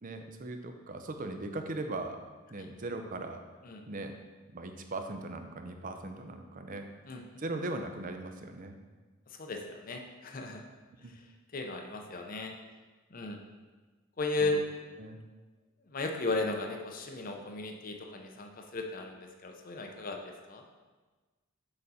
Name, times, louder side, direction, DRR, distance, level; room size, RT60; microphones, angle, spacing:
voice 1, 0.0-2.2 2.5-3.4 3.9-4.1 4.5-6.9 7.4-8.8 11.0-11.1 14.4-14.5 15.0-15.2, right 2 dB, 40° right, 6 dB, 0.6 m, -39 dB
voice 2, 9.3-10.6 11.1-11.2 11.5-12.5 13.1-13.4 14.2-14.6 15.9-20.6, left 2 dB, 40° left, 3 dB, 0.6 m, -35 dB
6.7 x 5.0 x 4.1 m, 1.3 s
head